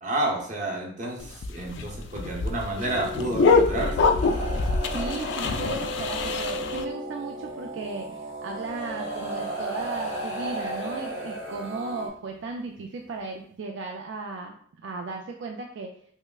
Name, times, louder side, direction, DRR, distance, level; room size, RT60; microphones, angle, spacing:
voice 1, 0.0-4.1, right 2 dB, 40° right, 0 dB, 0.8 m, -30 dB
sound 1, 1.2-6.8, left 4 dB, 65° left, 0.3 m, -25 dB
sound 2, 2.8-12.1, equal, 90° right, 1.0 m, -37 dB
sound 3, 4.2-6.3 7.7-7.8 8.5-12.1 13.2-13.3, right 2 dB, 40° left, 0.7 m, -35 dB
voice 2, 4.9-14.5 14.8-15.9, right 3 dB, 65° right, 2 dB, 0.3 m, -36 dB
5.4 x 2.0 x 2.3 m, 0.62 s
head